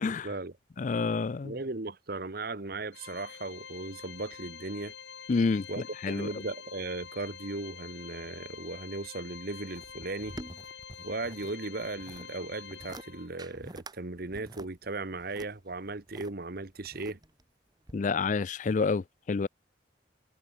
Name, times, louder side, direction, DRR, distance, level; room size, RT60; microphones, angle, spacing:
voice 1, 0.8-1.5 5.3-5.7 6.0-6.3 17.9-19.0 19.3-19.5, left 4 dB, 45° left, 0.4 m, -28 dB
voice 2, 1.4-4.9 5.7-10.4 11.0-17.2, right 2 dB, 55° right, 1.3 m, -37 dB
Organ, 2.9-13.6, left 7 dB, 70° left, 3.3 m, -47 dB
sound 1, 9.7-11.5 11.8-12.3 12.7-13.1 13.4-14.0 14.3-16.3 16.8-17.4 17.9-18.0, right 1 dB, 20° right, 2.3 m, -46 dB
head